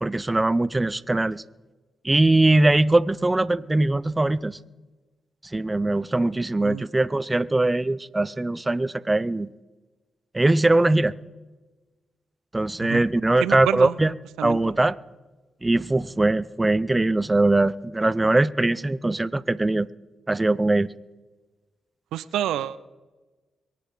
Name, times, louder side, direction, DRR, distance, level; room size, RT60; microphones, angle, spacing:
voice 1, 0.0-1.4 2.0-4.6 5.5-9.5 10.3-11.1 12.5-14.1 14.4-15.0 15.6-19.9 20.3-20.9, right 2 dB, 20° right, 17 dB, 0.6 m, -21 dB
voice 2, 13.4-14.0 14.4-14.6 22.1-22.8, right 11 dB, 90° right, 15 dB, 0.4 m, -28 dB
23.0 x 8.5 x 4.9 m, 1.2 s
supercardioid pair, 50°, 0 cm